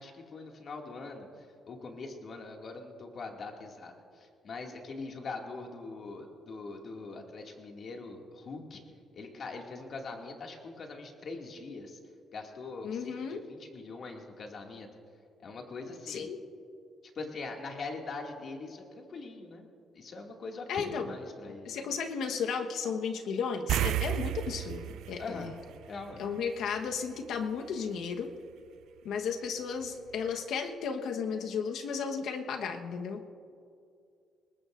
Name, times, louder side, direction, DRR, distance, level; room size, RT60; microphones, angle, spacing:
voice 1, 0.0-8.8 9.1-12.0 12.3-14.9 15.4-16.3 17.1-19.7 19.9-21.9 25.2-25.6 25.9-26.3, left 3 dB, 55° left, 1 dB, 2.3 m, -42 dB
voice 2, 12.8-13.4 16.1-16.4 20.7-21.1 21.6-25.5 26.2-28.3 29.0-33.3, left 6 dB, 80° left, 4 dB, 1.2 m, -34 dB
sound 1, 23.7-26.5 26.8-27.0 29.8-29.9 30.3-30.4, right 12 dB, 85° right, 0.4 m, -33 dB
22.0 x 19.5 x 2.6 m, 2.5 s
cardioid pair, 90°, 0 cm